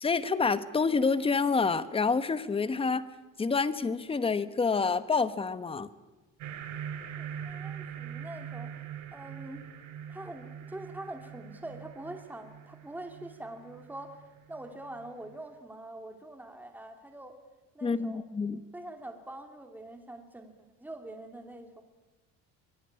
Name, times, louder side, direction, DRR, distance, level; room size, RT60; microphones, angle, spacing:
voice 1, 0.0-3.0 3.4-5.9 17.8-18.6, left 4 dB, 15° left, 13 dB, 1.1 m, -28 dB
sound 1, 6.4-15.3, right 8 dB, 65° right, 3.7 m, -43 dB
voice 2, 7.2-8.7 9.1-9.6 10.1-14.2 14.5-17.4 17.7-18.2 18.7-20.5 20.8-21.8, right 1 dB, 5° right, 5 dB, 2.7 m, -44 dB
26.0 x 22.0 x 8.9 m, 1.1 s
cardioid pair, 155°, 32 cm